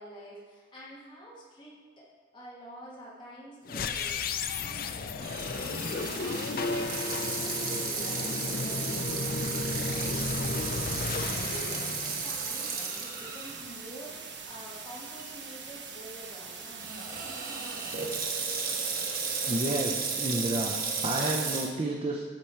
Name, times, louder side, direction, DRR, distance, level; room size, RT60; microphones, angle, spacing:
voice 1, 0.0-2.1 2.3-4.2 4.6-16.9, equal, 25° left, -6 dB, 1.4 m, -48 dB
sound 1, 3.7-12.9, left 4 dB, 50° left, 0.4 m, -33 dB
Water tap faucet / Sink (filling or washing), 5.2-13.6 14.1-14.2 14.9-15.2 16.8-21.7, right 5 dB, 50° right, 1.0 m, -34 dB
sound 2, 5.8-20.0, right 5 dB, 75° right, 1.1 m, -43 dB
voice 2, 19.5-22.2, right 1 dB, 30° right, 0 dB, 0.5 m, -31 dB
12.5 x 5.0 x 4.4 m, 1.5 s
head